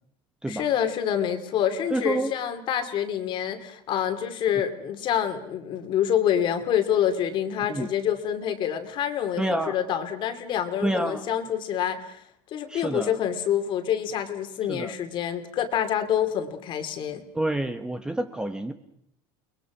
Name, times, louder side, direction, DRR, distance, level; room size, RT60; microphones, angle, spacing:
voice 1, 0.5-12.2 12.5-17.2, left 9 dB, 45° left, 8 dB, 2.6 m, -27 dB
voice 2, 1.9-2.3 7.7-7.9 9.4-9.8 10.8-11.2 12.7-13.1 14.7-14.9 17.3-18.7, right 1 dB, 5° right, 8 dB, 1.2 m, -28 dB
30.0 x 21.0 x 6.1 m, 0.72 s
cardioid pair, 140°, 12 cm